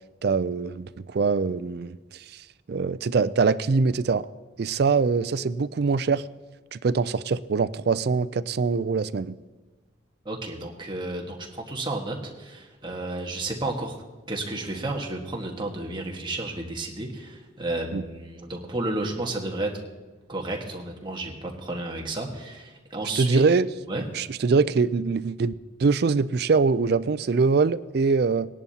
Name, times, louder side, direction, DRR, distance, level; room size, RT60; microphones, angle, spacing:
voice 1, 0.2-4.3 4.6-6.2 6.7-9.3 17.9-18.0 23.2-23.7 24.1-25.5 25.8-28.5, right 4 dB, 50° right, 15 dB, 0.4 m, -23 dB
voice 2, 10.2-14.0 14.3-19.7 20.3-23.4 23.9-24.0, right 2 dB, 25° right, 0 dB, 1.5 m, -32 dB
20.0 x 10.5 x 2.8 m, 1.2 s
head